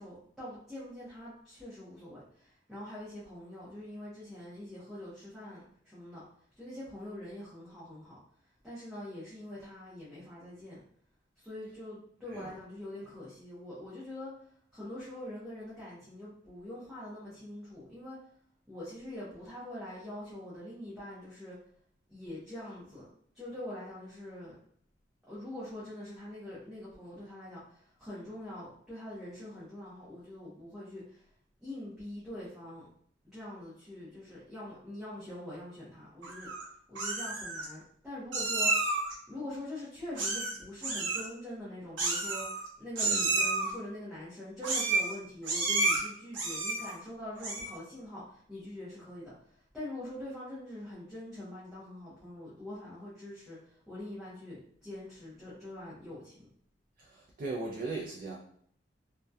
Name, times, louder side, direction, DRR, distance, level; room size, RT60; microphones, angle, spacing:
voice 1, 0.0-6.2 6.6-8.2 8.6-10.8 11.4-14.3 14.7-18.2 18.7-21.6 22.1-23.1 23.3-24.5 25.3-31.3 31.6-32.9 33.2-36.5 36.9-38.9 39.3-56.5, left 1 dB, ahead, -11 dB, 0.6 m, -44 dB
Meow, 36.2-36.6 37.0-37.7 38.3-39.1 40.2-40.6 40.8-41.3 42.0-42.7 43.0-43.7 44.6-45.1 45.4-46.0 46.3-46.9 47.4-47.8, right 3 dB, 80° right, 0.7 m, -30 dB
voice 2, 57.0-58.4, right 3 dB, 50° right, -2 dB, 0.3 m, -38 dB
2.6 x 2.1 x 2.2 m, 0.64 s
head